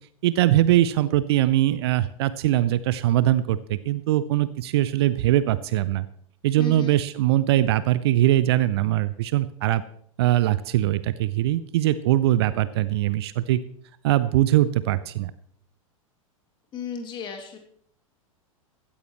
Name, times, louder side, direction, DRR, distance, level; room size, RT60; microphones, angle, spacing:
voice 1, 0.2-6.1 6.4-9.8 10.2-13.6 14.0-15.3, right 14 dB, 50° right, 16 dB, 0.6 m, -21 dB
voice 2, 6.6-6.9 16.7-17.6, left 5 dB, 25° left, 4 dB, 2.7 m, -34 dB
16.0 x 13.5 x 3.1 m, 0.63 s
figure-of-eight pair, 95°, 18 cm